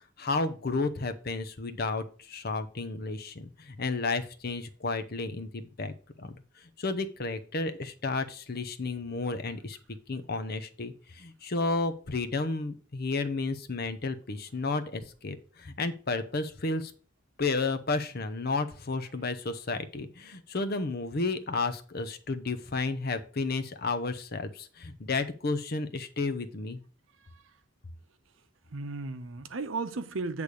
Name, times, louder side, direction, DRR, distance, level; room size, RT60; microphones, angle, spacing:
voice 1, 0.2-5.9 6.2-6.4 6.6-9.8 10.1-16.9 17.4-26.8, left 3 dB, 50° left, 0.8 m, -32 dB
voice 2, 27.1-27.6 28.7-30.4, right 3 dB, 80° right, 0.7 m, -35 dB
8.3 x 3.4 x 6.2 m
head